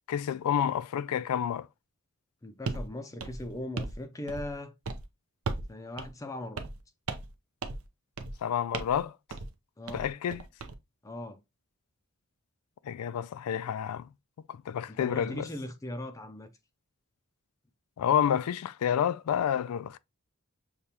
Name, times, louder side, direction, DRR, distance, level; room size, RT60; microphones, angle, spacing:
voice 1, 0.1-1.7 8.4-9.2 9.9-10.4 12.8-14.1 14.5-15.5 18.0-20.0, left 9 dB, 80° left, 0.3 m, -29 dB
voice 2, 2.4-4.7 5.7-6.7 9.8-10.1 11.0-11.4 14.9-16.5, left 1 dB, 15° left, 0.4 m, -39 dB
sound 1, 2.7-2.9 3.2-4.0 4.3-4.6 4.8-5.0 5.5-5.7 6.0-6.1 6.6-6.8 7.1-7.3 7.6-7.9 8.2-8.4 8.7-9.0 9.3-9.5 9.9-10.7, right 3 dB, 65° right, 0.6 m, -36 dB
6.6 x 2.3 x 2.8 m
head